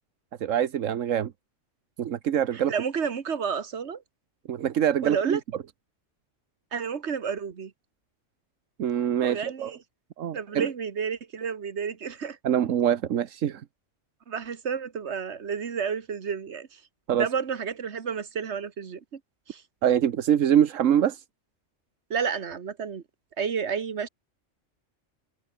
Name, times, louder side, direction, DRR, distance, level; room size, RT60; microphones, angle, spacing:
voice 1, 0.4-1.3 2.0-2.7 4.5-5.4 8.8-9.7 10.2-10.7 12.4-13.6 17.1-17.3 19.8-21.2, right 9 dB, 85° right, 1.3 m, -24 dB
voice 2, 2.5-4.0 5.0-5.4 6.7-7.7 9.2-9.8 10.3-12.4 14.3-16.8 17.1-19.2 19.5-19.6 22.1-23.0 23.4-24.1, right 6 dB, 60° right, 1.7 m, -31 dB
omnidirectional pair, 1.3 m